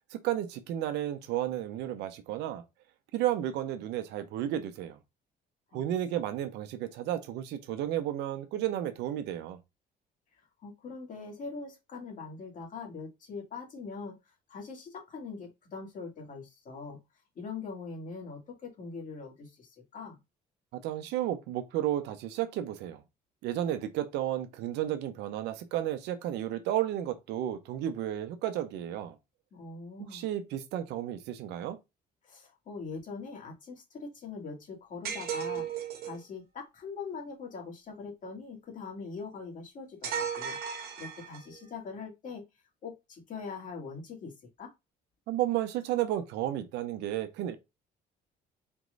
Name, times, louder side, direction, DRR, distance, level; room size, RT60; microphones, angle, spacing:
voice 1, 0.2-2.6 3.1-5.0 5.7-9.6 20.7-23.0 23.4-29.2 30.0-31.8 45.3-47.6, right 12 dB, 85° right, 0.8 m, -32 dB
voice 2, 10.6-17.0 17.4-20.2 29.5-30.2 32.2-40.6 41.0-42.4 42.8-44.7, left 4 dB, 50° left, 2.3 m, -42 dB
sound 1, 35.0-36.2 40.0-41.6, right 7 dB, 65° right, 1.2 m, -35 dB
4.5 x 3.1 x 3.9 m
cardioid pair, 110°, 17 cm